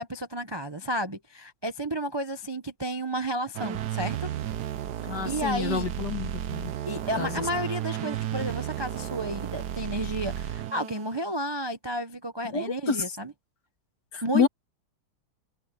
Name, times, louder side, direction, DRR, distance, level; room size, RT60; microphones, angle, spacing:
voice 1, 0.0-4.3 5.2-5.9 6.9-13.3 14.2-14.5, right 1 dB, 30° right, 0.4 m, -32 dB
sound 1, 3.5-11.3, right 11 dB, 60° right, 1.2 m, -33 dB
voice 2, 5.1-6.7 7.2-7.4 12.5-13.0 14.1-14.5, left 6 dB, 55° left, 2.7 m, -28 dB
open air
omnidirectional pair, 2.3 m